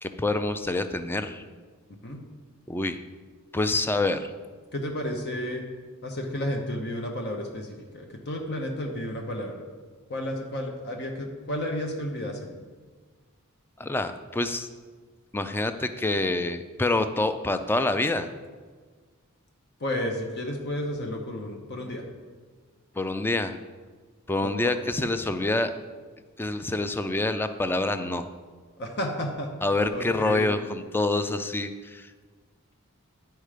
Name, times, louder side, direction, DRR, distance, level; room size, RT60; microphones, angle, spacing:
voice 1, 0.0-1.4 2.7-3.0 3.5-4.3 13.8-14.7 15.3-18.3 23.0-23.6 24.3-25.7 26.4-28.3 29.6-32.1, left 2 dB, 10° left, 9 dB, 0.3 m, -26 dB
voice 2, 4.7-5.6 6.0-9.6 10.1-12.5 19.8-22.1 24.4-24.7 28.8-29.5 29.9-30.5, left 1 dB, 50° left, 2 dB, 0.8 m, -32 dB
10.0 x 4.5 x 5.0 m, 1.5 s
head